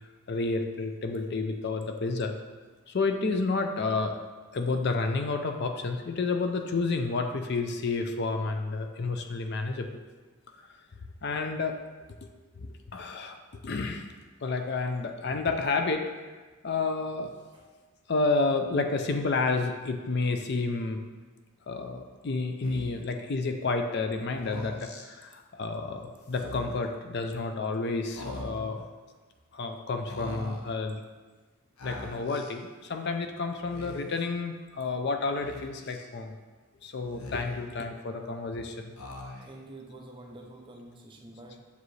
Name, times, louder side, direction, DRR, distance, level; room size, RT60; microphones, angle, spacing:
voice 1, 0.3-2.3 2.9-4.2 4.5-9.9 11.2-11.8 12.2-12.3 12.6-14.1 14.4-16.1 16.6-17.3 18.1-21.0 21.7-28.9 29.5-31.0 31.8-36.3 36.8-38.9, left 3 dB, 50° left, 5 dB, 0.4 m, -30 dB
Speech, 22.6-23.1 24.3-25.1 26.3-26.9 28.1-28.8 30.1-30.7 31.8-32.5 33.6-34.2 35.4-36.1 37.0-37.8 39.0-39.7, left 2 dB, 85° left, 0.7 m, -42 dB
voice 2, 39.4-41.6, right 2 dB, 20° right, 1 dB, 0.5 m, -47 dB
6.7 x 5.0 x 3.2 m, 1.3 s
head